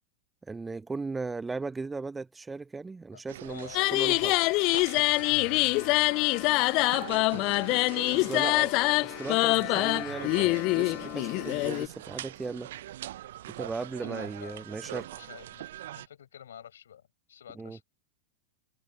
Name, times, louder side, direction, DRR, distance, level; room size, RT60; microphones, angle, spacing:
voice 1, 0.5-4.3 8.1-8.7 9.0-12.7 13.5-15.3 17.5-17.8, right 4 dB, 10° right, 0.5 m, -37 dB
sound 1, 3.3-16.1, right 13 dB, 55° right, 0.7 m, -43 dB
voice 2, 3.5-6.3 6.9-7.7 8.2-8.6 14.0-14.6 15.2-17.8, left 9 dB, 65° left, 6.0 m, -49 dB
sound 2, 3.7-11.9, left 24 dB, 40° left, 0.6 m, -25 dB
figure-of-eight pair, 90°, 0 cm